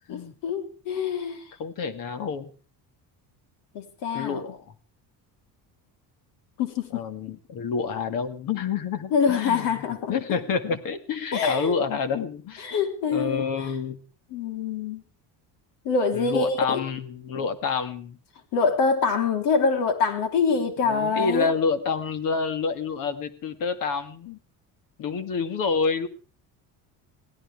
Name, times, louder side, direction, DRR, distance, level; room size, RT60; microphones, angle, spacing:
voice 1, 0.1-1.4 3.7-4.4 6.6-7.0 9.1-10.4 11.3-11.7 12.6-13.7 14.3-15.0 15.8-16.9 18.5-21.5, left 5 dB, 75° left, 5 dB, 3.9 m, -25 dB
voice 2, 1.6-2.5 4.1-4.6 6.9-12.7 13.1-14.0 16.1-18.2 20.8-24.4 25.0-26.1, left 5 dB, 55° left, 10 dB, 2.1 m, -28 dB
23.0 x 17.0 x 3.6 m, 0.37 s
cardioid pair, 170°, 40 cm